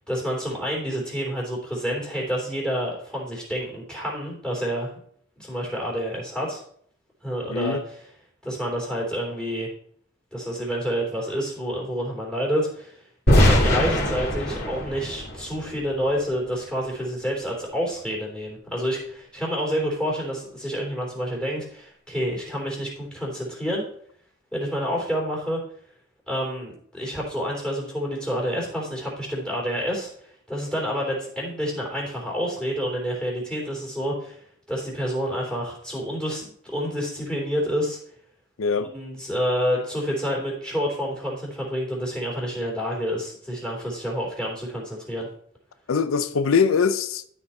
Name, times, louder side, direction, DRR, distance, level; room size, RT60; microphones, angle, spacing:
voice 1, 0.1-5.0 5.4-6.6 7.2-8.1 8.4-9.7 10.3-13.0 13.3-23.8 24.5-25.6 26.3-30.1 30.5-38.0 38.8-45.3, equal, 5° left, 3.3 m, -28 dB
voice 2, 7.5-7.8 38.6-38.9 45.9-47.2, left 5 dB, 90° left, 0.5 m, -22 dB
sound 1, 13.3-16.2, left 1 dB, 50° left, 2.5 m, -21 dB
12.5 x 4.5 x 4.3 m
head